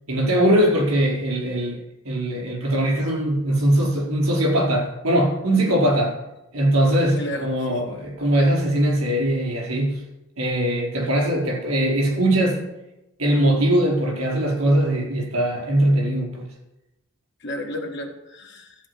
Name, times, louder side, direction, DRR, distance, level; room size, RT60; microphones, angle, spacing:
voice 1, 0.1-6.1 6.5-10.0 10.4-12.7 13.2-16.5, right 1 dB, 85° right, -3 dB, 4.9 m, -21 dB
voice 2, 7.2-7.8 17.4-18.7, left 1 dB, 55° left, 3 dB, 1.6 m, -33 dB
13.5 x 4.7 x 8.4 m, 0.91 s
head